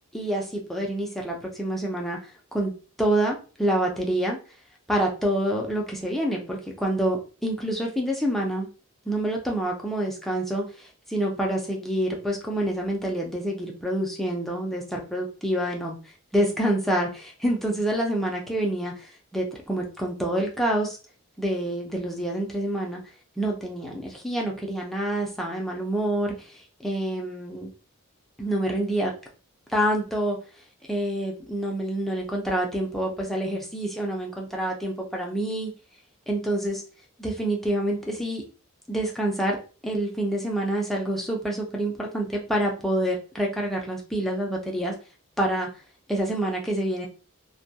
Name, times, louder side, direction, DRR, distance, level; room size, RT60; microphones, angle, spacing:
voice 1, 0.1-2.2 2.5-2.7 3.0-4.4 4.9-8.7 9.1-16.0 16.3-21.0 21.4-23.0 23.4-26.5 26.8-27.7 28.4-29.1 29.7-30.4 30.9-35.7 36.3-36.8 37.2-38.4 38.9-39.6 39.8-44.9 45.4-45.7 46.1-47.1, right 1 dB, ahead, -1 dB, 0.5 m, -27 dB
2.2 x 2.1 x 2.7 m, 0.35 s
head